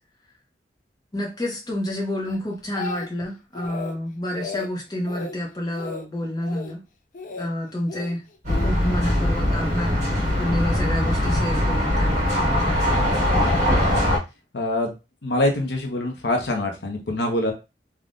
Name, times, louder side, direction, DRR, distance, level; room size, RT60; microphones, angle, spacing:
voice 1, 1.1-6.8 7.4-8.2 8.6-10.0 10.4-12.5, left 1 dB, 20° left, -1 dB, 0.7 m, -29 dB
Speech, 2.3-3.3 3.5-4.0 4.3-4.7 5.1-5.3 5.7-6.1 6.4-6.7 7.1-7.5 7.9-8.7 9.5-9.7, left 4 dB, 45° left, 0.4 m, -35 dB
sound 1, 8.4-14.2, left 1 dB, 40° right, 1.5 m, -21 dB
voice 2, 14.5-14.9 15.2-17.5, left 1 dB, 70° left, 3 dB, 0.7 m, -24 dB
3.5 x 2.2 x 2.5 m, 0.26 s
head